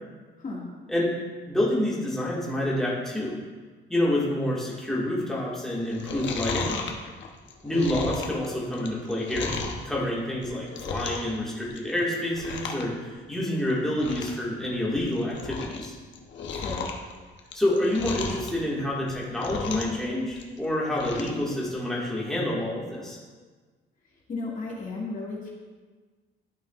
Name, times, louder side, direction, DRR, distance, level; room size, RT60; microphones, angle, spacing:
voice 1, 1.5-3.4 3.9-6.8 7.6-9.6 9.8-16.0 17.5-23.2, left 1 dB, ahead, -6 dB, 1.8 m, -28 dB
Chewing mastication, 5.9-9.8 10.3-11.4 11.6-12.0 12.3-12.9 13.1-13.2 13.7-13.8 14.0-14.4 14.8-15.9 16.1-18.5 19.0-20.0 20.3-21.4 21.8-21.9, left 5 dB, 70° left, 0.9 m, -34 dB
voice 2, 16.4-16.9 24.3-25.5, left 3 dB, 40° left, -4 dB, 2.0 m, -34 dB
11.5 x 5.4 x 2.4 m, 1.4 s
cardioid pair, 90°, 20 cm